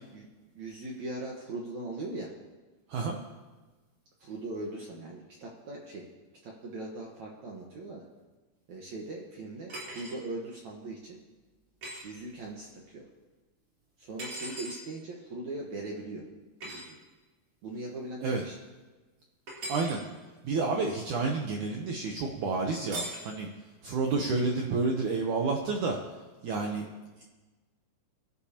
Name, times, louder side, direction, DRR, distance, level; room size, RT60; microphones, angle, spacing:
voice 1, 0.5-2.3 4.2-6.1 6.4-8.1 8.7-11.2 12.0-13.1 14.0-16.3 16.6-17.0 17.6-18.6, right 2 dB, 65° right, -2 dB, 2.0 m, -40 dB
sound 1, 9.7-10.2 11.8-12.1 14.2-14.8 16.6-16.9 19.5-20.0 22.9-23.3, right 1 dB, 35° right, 4.3 m, -39 dB
voice 2, 19.7-20.0 20.4-23.5 23.8-26.0 26.4-26.8 27.2-27.3, right 3 dB, 80° right, 1 dB, 1.7 m, -29 dB
22.0 x 12.0 x 2.9 m, 1.2 s
omnidirectional pair, 4.9 m